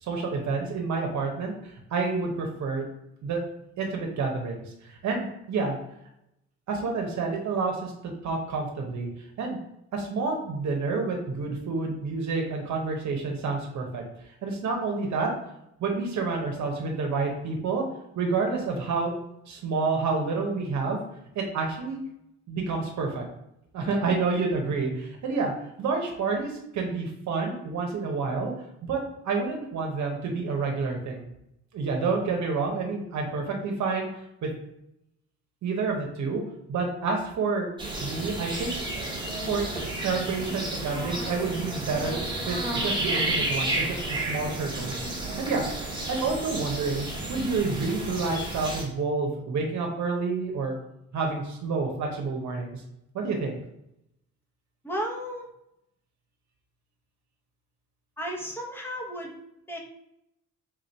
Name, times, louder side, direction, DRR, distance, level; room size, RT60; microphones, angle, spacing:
voice 1, 0.0-2.8 3.2-3.4 3.8-5.8 6.7-9.1 9.4-9.6 9.9-14.0 14.4-15.3 15.8-17.8 18.2-19.1 19.5-21.0 21.3-22.0 22.5-23.2 23.7-25.5 25.8-28.5 28.8-31.3 31.7-34.1 34.4-34.5 35.6-36.4 36.7-37.7 38.0-38.7 39.5-42.2 42.4-45.0 45.4-45.7 46.1-50.7 51.1-52.8 53.1-53.6, right 4 dB, 65° right, 2 dB, 0.9 m, -29 dB
sound 1, 37.8-48.8, right 2 dB, 15° right, 1.3 m, -31 dB
voice 2, 54.8-55.5 58.2-59.3 59.7-59.8, equal, 5° left, 0 dB, 1.0 m, -33 dB
3.6 x 2.5 x 4.4 m, 0.82 s
cardioid pair, 90°, 30 cm